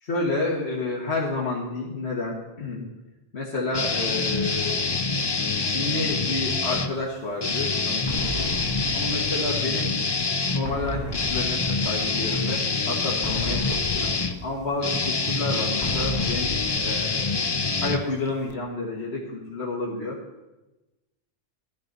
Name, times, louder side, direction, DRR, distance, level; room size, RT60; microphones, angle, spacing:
voice 1, 0.0-2.9 3.3-4.8 5.7-8.5 8.9-10.0 10.5-14.1 14.4-17.4 17.8-20.2, left 2 dB, 55° left, -4 dB, 1.8 m, -30 dB
sound 1, 3.7-6.9 7.4-18.5, left 4 dB, 35° left, 0.4 m, -26 dB
sound 2, 8.1-9.8 10.6-12.4 13.2-15.0 15.8-17.6, left 1 dB, 20° left, 1.4 m, -35 dB
13.5 x 10.5 x 4.0 m, 1.0 s
omnidirectional pair, 1.3 m